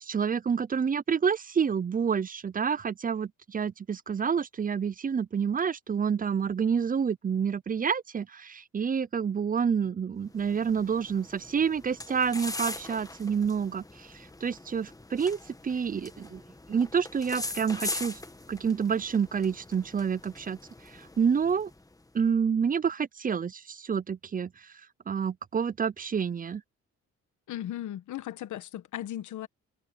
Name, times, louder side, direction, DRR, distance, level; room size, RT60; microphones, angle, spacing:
voice 1, 0.0-16.4 16.7-18.2 18.5-20.6 20.9-21.7 22.1-24.5 25.1-26.6, right 6 dB, 30° right, 0.6 m, -28 dB
sound 1, 10.3-22.0, left 2 dB, 10° left, 1.4 m, -41 dB
voice 2, 27.5-29.5, left 12 dB, 75° left, 1.4 m, -36 dB
cardioid pair, 90°, 30 cm